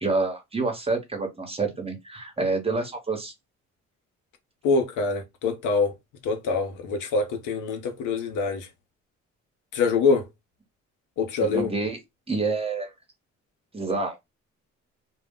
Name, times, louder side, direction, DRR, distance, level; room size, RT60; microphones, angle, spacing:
voice 1, 0.0-3.3 11.4-12.0 12.3-12.9 13.7-14.2, right 3 dB, 20° right, 0.9 m, -28 dB
voice 2, 4.6-5.9 6.2-8.7 9.7-10.3 11.2-11.7, left 4 dB, 85° left, 0.7 m, -24 dB
2.2 x 2.0 x 3.6 m
cardioid pair, 90°, 30 cm